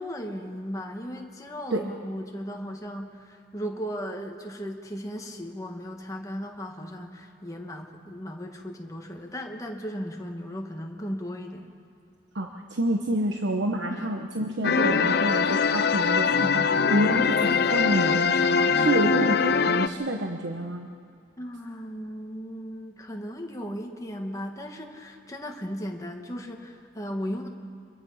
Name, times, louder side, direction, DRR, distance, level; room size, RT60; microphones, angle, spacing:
voice 1, 0.0-11.7 13.9-14.1 21.4-27.5, equal, 20° left, 2 dB, 1.6 m, -36 dB
voice 2, 12.3-20.9, right 1 dB, 75° right, 3 dB, 1.2 m, -28 dB
sound 1, 14.6-19.9, left 5 dB, 55° left, 0.6 m, -22 dB
25.0 x 22.5 x 5.8 m, 2.2 s
head